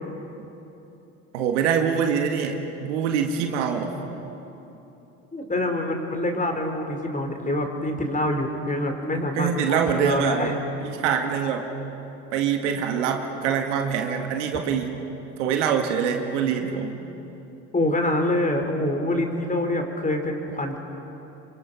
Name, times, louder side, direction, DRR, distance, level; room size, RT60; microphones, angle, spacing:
voice 1, 1.3-4.0 9.4-10.5 10.8-11.7 12.3-15.0 15.4-17.0, right 7 dB, 85° right, 4 dB, 2.1 m, -24 dB
voice 2, 5.3-10.6 17.7-20.8, left 1 dB, 20° left, 4 dB, 4.7 m, -25 dB
27.5 x 25.0 x 6.1 m, 3.0 s
hypercardioid pair, 65°, 35 cm